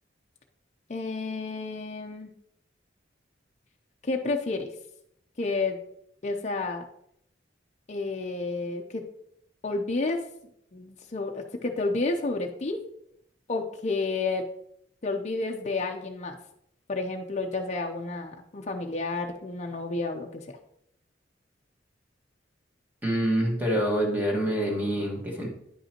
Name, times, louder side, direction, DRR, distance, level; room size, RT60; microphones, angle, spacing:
voice 1, 0.9-2.3 4.0-4.7 5.4-5.8 6.2-6.8 7.9-9.0 9.6-10.2 10.7-12.8 13.5-14.4 15.0-16.4 16.9-20.5, left 3 dB, 40° left, 2 dB, 0.6 m, -30 dB
voice 2, 23.0-25.5, right 1 dB, 10° right, -1 dB, 1.5 m, -26 dB
9.8 x 5.4 x 2.9 m, 0.74 s
head